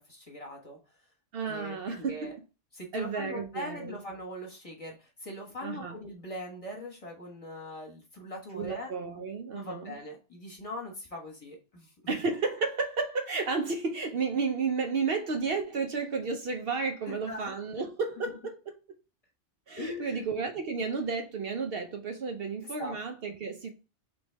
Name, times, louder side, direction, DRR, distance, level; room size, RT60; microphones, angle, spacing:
voice 1, 0.1-0.8 1.4-2.3 2.7-8.9 9.5-11.9 17.0-17.9 19.8-20.2 22.8-23.0 23.3-23.4, left 1 dB, 30° left, 1.2 m, -41 dB
voice 2, 1.3-2.4 2.9-3.9 5.6-6.0 8.5-10.0 12.1-18.6 19.7-23.7, right 4 dB, 60° right, 0.8 m, -32 dB
3.3 x 3.1 x 4.4 m
omnidirectional pair, 1.2 m